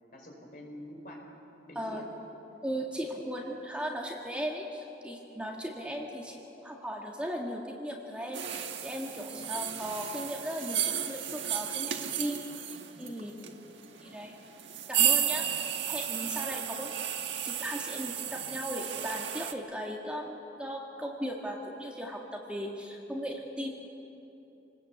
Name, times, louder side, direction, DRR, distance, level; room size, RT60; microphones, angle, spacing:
voice 1, 0.1-1.2 1.7-2.1 9.3-9.7 15.2-15.5 16.2-16.5, left 1 dB, 50° left, 0 dB, 5.1 m, -47 dB
voice 2, 2.6-13.3 14.0-14.4 14.9-15.4 15.9-16.9 17.4-23.8, equal, 5° right, -1 dB, 1.9 m, -37 dB
sound 1, 8.3-19.5, right 10 dB, 85° right, 1.6 m, -33 dB
28.0 x 20.0 x 8.2 m, 2.9 s
head